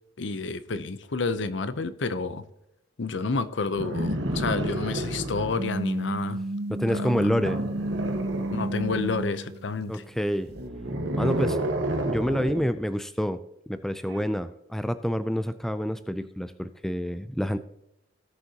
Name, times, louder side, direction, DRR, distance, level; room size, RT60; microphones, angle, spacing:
voice 1, 0.2-2.4 3.0-6.4 6.9-7.4 8.5-10.0, left 4 dB, 65° left, 0.7 m, -30 dB
sound 1, 3.8-5.7 7.4-9.2 10.5-12.7 14.1-14.2, right 1 dB, 70° right, 1.4 m, -30 dB
sound 2, 5.6-10.1, right 1 dB, 55° right, 0.6 m, -32 dB
voice 2, 6.7-7.6 9.9-10.5 11.1-11.6 12.0-13.4 13.7-17.6, equal, ahead, 0.4 m, -28 dB
18.0 x 6.6 x 2.9 m
head